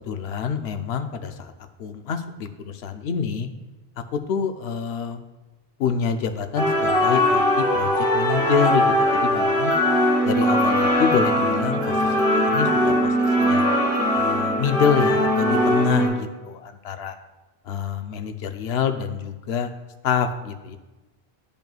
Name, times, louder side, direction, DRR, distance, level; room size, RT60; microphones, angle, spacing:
voice 1, 0.0-1.5 1.8-3.5 4.1-5.2 5.8-8.9 9.1-9.7 10.2-13.7 14.1-17.2 17.6-19.7 20.0-20.8, left 6 dB, 75° left, 8 dB, 0.8 m, -26 dB
sound 1, 6.5-16.1, equal, 25° left, 1.6 m, -20 dB
10.5 x 5.2 x 2.4 m, 1.1 s
omnidirectional pair, 1.1 m